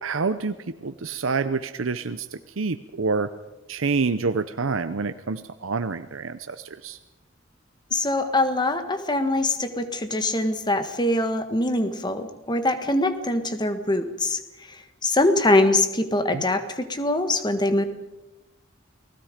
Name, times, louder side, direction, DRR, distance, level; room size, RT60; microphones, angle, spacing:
voice 1, 0.0-3.3 3.7-7.0 16.3-16.4, right 4 dB, 80° right, 10 dB, 0.8 m, -27 dB
voice 2, 7.9-14.4 15.0-17.8, left 2 dB, 20° left, 8 dB, 1.5 m, -23 dB
29.5 x 19.5 x 5.1 m, 1.0 s
head